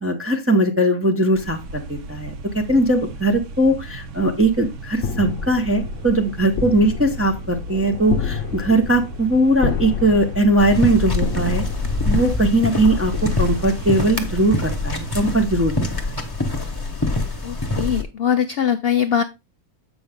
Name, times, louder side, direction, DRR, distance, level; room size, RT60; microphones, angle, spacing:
voice 1, 0.0-11.6 12.0-16.2, right 1 dB, 15° right, 2 dB, 0.5 m, -20 dB
sound 1, 1.3-15.3, right 1 dB, 60° right, 1.0 m, -35 dB
sound 2, 5.0-14.3, left 7 dB, 60° left, 1.0 m, -30 dB
sound 3, 10.6-18.0, left 2 dB, 20° left, 0.8 m, -25 dB
voice 2, 17.4-19.2, left 8 dB, 75° left, 8 dB, 0.5 m, -21 dB
7.7 x 5.5 x 3.5 m, 0.24 s
omnidirectional pair, 1.6 m